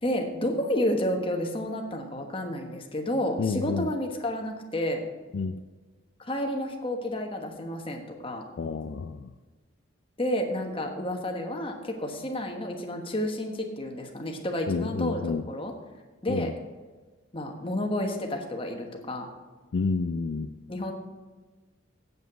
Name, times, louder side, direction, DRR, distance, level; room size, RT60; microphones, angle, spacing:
voice 1, 0.0-5.0 6.2-8.4 10.2-15.7 16.2-16.5 17.3-19.3 20.7-20.9, left 1 dB, 25° left, 2 dB, 1.3 m, -30 dB
voice 2, 3.4-3.9 5.3-5.6 8.6-9.3 14.7-15.4 16.3-16.5 19.7-20.5, left 4 dB, 60° left, 10 dB, 0.3 m, -29 dB
8.0 x 7.3 x 6.7 m, 1.3 s
head